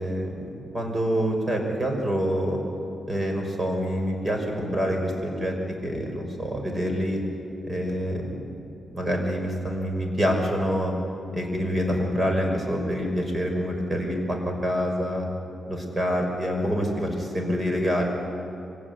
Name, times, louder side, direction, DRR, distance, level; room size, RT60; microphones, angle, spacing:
voice 1, 0.0-2.6 3.1-5.5 5.8-7.2 7.7-8.4 8.9-10.9 11.3-15.3 15.7-18.0, equal, 25° right, 2 dB, 5.6 m, -26 dB
24.5 x 16.5 x 9.9 m, 2.7 s
cardioid pair, 100°, 0 cm